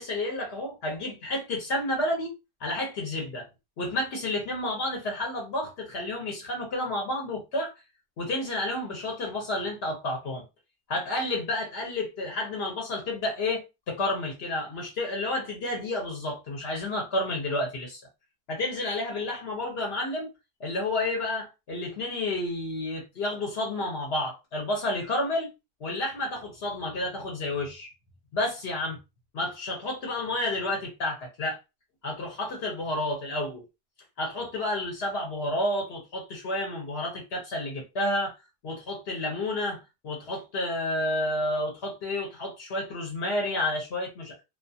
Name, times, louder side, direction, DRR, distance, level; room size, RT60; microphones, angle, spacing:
voice 1, 0.0-2.3 2.6-3.5 3.8-7.7 8.2-10.4 10.9-18.0 18.5-20.3 20.6-25.5 25.8-27.9 28.3-29.0 29.3-31.6 32.0-33.6 34.2-38.3 38.6-44.3, left 1 dB, 70° left, 1.0 m, -30 dB
2.4 x 2.3 x 2.6 m
omnidirectional pair, 1.1 m